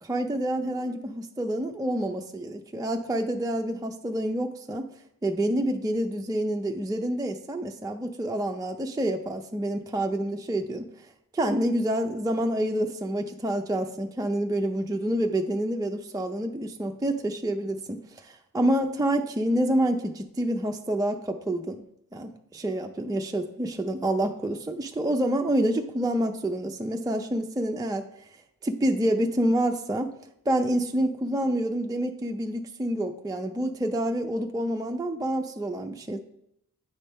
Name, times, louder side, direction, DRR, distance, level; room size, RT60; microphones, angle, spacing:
voice 1, 0.0-4.9 5.2-10.9 11.3-21.8 22.1-28.1 28.6-30.1 30.5-36.2, right 1 dB, 10° right, 4 dB, 0.4 m, -28 dB
9.2 x 4.1 x 3.5 m, 0.76 s
wide cardioid pair, 60°, 36 cm